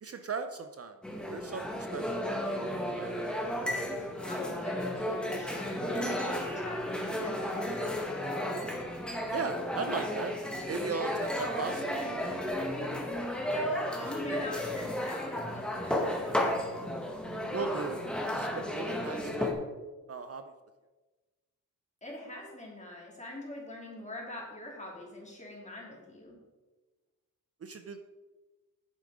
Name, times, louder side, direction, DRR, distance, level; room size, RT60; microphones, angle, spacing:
voice 1, 0.0-1.0 1.3-1.6 1.9-3.2 9.3-10.4 10.7-12.1 17.5-18.0 18.3-19.5 20.1-20.4 27.6-28.0, right 5 dB, 45° right, 8 dB, 0.6 m, -37 dB
sound 1, 1.0-19.5, left 1 dB, 5° left, 1.7 m, -33 dB
voice 2, 4.2-8.2 13.4-16.4 22.0-26.4, left 1 dB, 20° left, -2 dB, 3.0 m, -43 dB
9.1 x 7.4 x 4.9 m, 1.2 s
wide cardioid pair, 100°, 33 cm